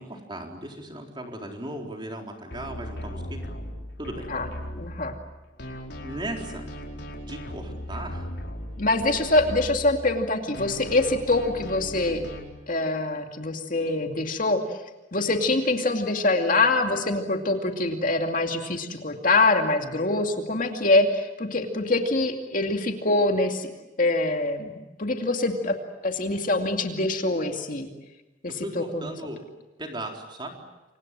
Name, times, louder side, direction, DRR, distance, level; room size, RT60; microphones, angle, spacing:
voice 1, 0.0-3.4 4.0-4.2 6.0-6.7 7.3-8.3 28.5-29.4 29.8-30.5, right 1 dB, 25° right, 2 dB, 4.0 m, -37 dB
sound 1, 2.5-5.3 5.6-10.3 10.5-12.4, equal, 60° left, 4.8 m, -37 dB
voice 2, 4.8-5.2 8.8-12.2 12.7-14.6 15.1-23.7 24.0-24.7 25.0-25.8 26.0-27.9 28.4-29.1, left 2 dB, 45° left, 4 dB, 2.5 m, -24 dB
29.0 x 25.0 x 7.6 m, 1.1 s
head